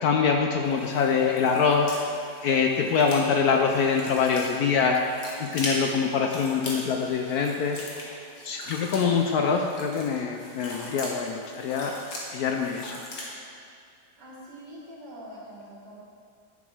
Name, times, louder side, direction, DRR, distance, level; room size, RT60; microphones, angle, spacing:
voice 1, 0.0-1.9 2.4-5.0 5.4-7.8 8.4-11.9 12.3-13.0, left 6 dB, 70° left, 3 dB, 0.9 m, -24 dB
sound 1, 0.6-13.3, left 1 dB, 55° left, 1.8 m, -40 dB
voice 2, 14.2-16.0, equal, 70° right, -6 dB, 2.3 m, -44 dB
10.0 x 7.1 x 3.3 m, 2.4 s
omnidirectional pair, 1.9 m